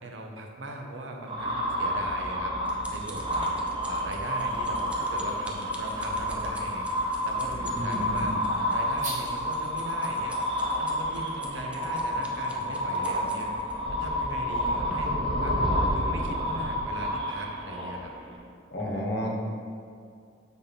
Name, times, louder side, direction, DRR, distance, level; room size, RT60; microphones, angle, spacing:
voice 1, 0.0-6.8 7.2-8.3 8.7-10.4 10.8-13.5 14.0-15.6 15.9-18.1 18.8-19.1, right 1 dB, 75° right, 2 dB, 0.8 m, -39 dB
sound 1, 1.3-18.3, equal, 25° right, 0.9 m, -29 dB
sound 2, 2.1-13.7 14.4-14.6 14.9-15.0, right 1 dB, 5° right, 0.6 m, -48 dB
sound 3, 4.3-9.7, right 2 dB, 45° right, 1.3 m, -45 dB
voice 2, 7.7-8.4 18.7-19.4, equal, 60° left, -2 dB, 1.1 m, -31 dB
5.8 x 4.2 x 5.3 m, 2.3 s
head